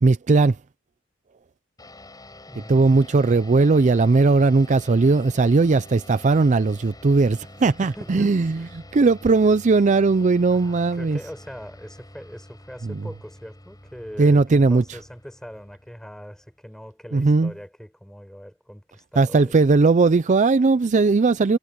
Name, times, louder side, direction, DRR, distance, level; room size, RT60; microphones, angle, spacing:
voice 1, 0.0-0.6 2.7-11.2 12.8-13.0 14.2-15.0 17.1-17.5 19.2-21.6, right 3 dB, 35° right, 0.4 m, -18 dB
sound 1, 1.8-16.6, left 1 dB, 20° left, 8.0 m, -46 dB
voice 2, 2.4-3.0 7.8-8.7 10.5-19.6, equal, 5° left, 7.1 m, -41 dB
head